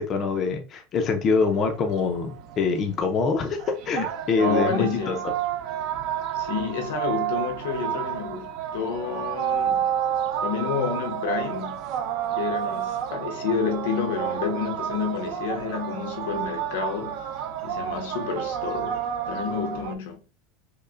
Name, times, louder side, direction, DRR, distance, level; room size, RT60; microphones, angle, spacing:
voice 1, 0.0-5.3, left 5 dB, 25° left, 0.5 m, -25 dB
sound 1, 1.4-19.9, right 10 dB, 45° right, 0.5 m, -30 dB
voice 2, 4.4-5.3 6.3-9.9 10.4-11.8 12.3-17.2 17.6-20.2, left 6 dB, 85° left, 0.8 m, -29 dB
5.3 x 2.1 x 2.4 m
supercardioid pair, 170°, 0 cm